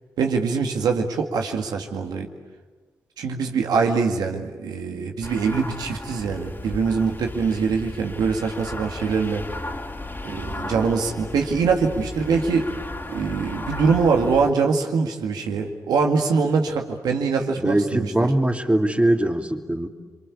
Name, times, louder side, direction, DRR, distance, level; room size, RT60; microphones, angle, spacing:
voice 1, 0.2-2.3 3.2-9.4 10.2-12.7 13.1-18.1, right 5 dB, 90° right, 3 dB, 2.1 m, -23 dB
sound 1, 5.2-14.5, left 2 dB, 35° left, 3.6 m, -35 dB
voice 2, 17.6-19.9, right 1 dB, 20° right, 4 dB, 2.9 m, -21 dB
29.0 x 23.5 x 8.6 m, 1.4 s
supercardioid pair, 40°, 7 cm